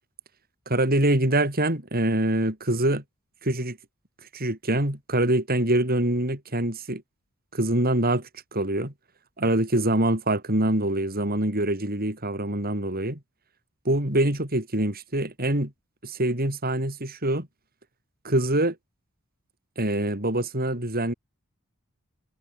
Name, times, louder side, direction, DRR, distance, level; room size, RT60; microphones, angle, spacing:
voice 1, 0.7-3.0 3.4-3.8 4.3-7.0 7.5-8.9 9.4-13.2 13.9-15.7 16.0-17.5 18.2-18.8 19.8-21.1, right 1 dB, 40° right, 5.3 m, -24 dB
head